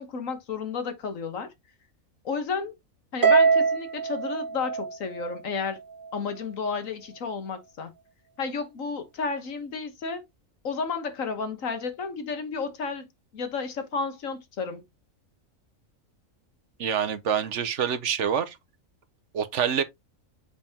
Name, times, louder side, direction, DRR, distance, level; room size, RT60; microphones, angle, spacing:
voice 1, 0.0-1.5 2.2-2.7 3.1-5.8 6.1-7.9 8.4-10.2 10.6-13.1 13.3-14.8, left 5 dB, 70° left, 1.6 m, -32 dB
Harp, 3.2-5.7, right 5 dB, 40° right, 1.2 m, -23 dB
voice 2, 16.8-18.6 19.3-19.8, right 8 dB, 65° right, 1.0 m, -26 dB
6.8 x 5.4 x 2.8 m
omnidirectional pair, 1.4 m